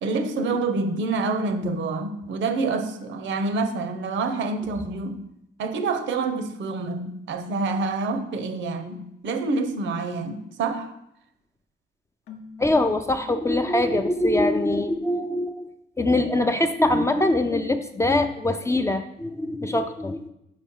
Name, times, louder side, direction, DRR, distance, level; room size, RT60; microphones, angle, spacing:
voice 1, 0.0-5.2 5.6-10.9, right 3 dB, 70° right, 0.8 m, -27 dB
Keyboard (musical), 12.3-14.2, left 4 dB, 90° left, 0.8 m, -45 dB
voice 2, 12.6-15.7 16.0-20.3, left 1 dB, 15° left, 0.4 m, -23 dB
4.9 x 4.2 x 5.4 m
cardioid pair, 90°, 20 cm